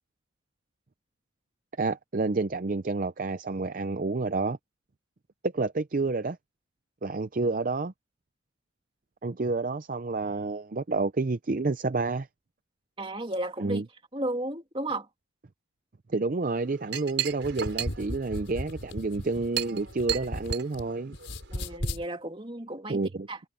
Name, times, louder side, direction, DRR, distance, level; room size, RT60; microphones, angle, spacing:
voice 1, 1.8-4.6 5.4-6.4 7.0-7.9 9.2-12.3 13.6-13.8 16.1-21.1 22.9-23.3, right 3 dB, 40° right, 0.5 m, -29 dB
voice 2, 13.0-13.8 14.1-15.1 21.5-23.0 23.3-23.4, right 1 dB, 25° right, 2.7 m, -33 dB
Chink clink, 16.4-21.8, right 11 dB, 60° right, 6.3 m, -36 dB
sound 1, 17.3-20.8 21.1-22.0, left 1 dB, 60° left, 4.9 m, -36 dB
head